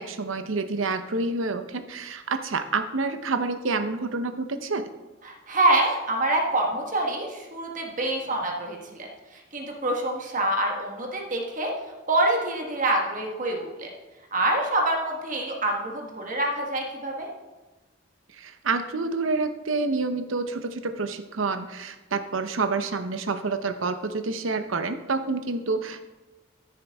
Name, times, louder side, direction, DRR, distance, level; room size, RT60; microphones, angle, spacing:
voice 1, 0.0-4.9 18.4-26.0, right 3 dB, 85° right, 8 dB, 0.8 m, -28 dB
voice 2, 5.2-11.7 12.1-13.9 14.3-17.3, right 1 dB, 40° right, 1 dB, 1.4 m, -26 dB
14.0 x 6.5 x 3.5 m, 1.1 s
head